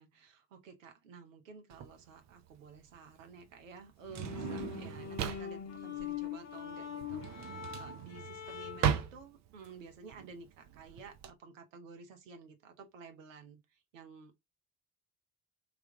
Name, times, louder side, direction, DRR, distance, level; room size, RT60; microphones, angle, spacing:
voice 1, 0.0-14.4, right 5 dB, 75° right, 0.9 m, -52 dB
Drawer open or close, 1.7-11.3, right 8 dB, 45° right, 0.7 m, -38 dB
sound 1, 4.0-9.1, left 8 dB, 40° left, 0.9 m, -43 dB
3.3 x 3.1 x 3.7 m
figure-of-eight pair, 50°, 39 cm